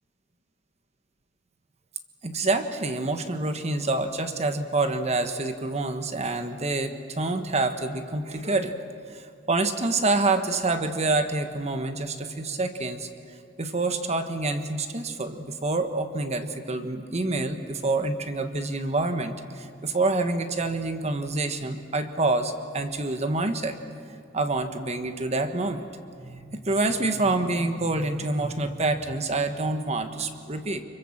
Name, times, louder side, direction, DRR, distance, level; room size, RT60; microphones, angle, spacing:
voice 1, 2.2-8.7 9.1-13.1 13.6-23.8 24.3-25.9 26.2-30.8, right 2 dB, 35° right, 8 dB, 1.3 m, -27 dB
26.0 x 23.5 x 7.3 m, 2.4 s
head